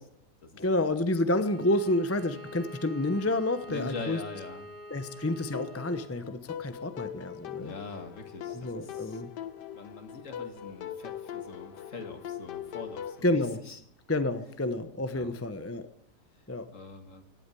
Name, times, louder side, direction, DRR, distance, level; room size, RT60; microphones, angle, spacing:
voice 1, 0.6-4.2 4.9-7.7 8.5-9.3 13.2-13.6 14.1-15.9 16.5-16.7, left 1 dB, 15° left, 11 dB, 0.6 m, -29 dB
Bowed string instrument, 1.2-6.2, equal, 35° right, 1.9 m, -46 dB
voice 2, 3.7-4.7 7.6-9.2 9.7-13.8 15.1-15.3 16.3-17.2, left 3 dB, 50° left, 8 dB, 2.0 m, -43 dB
sound 1, 5.5-13.2, left 9 dB, 90° left, 1.6 m, -41 dB
16.0 x 8.7 x 9.9 m, 0.70 s
omnidirectional pair, 1.8 m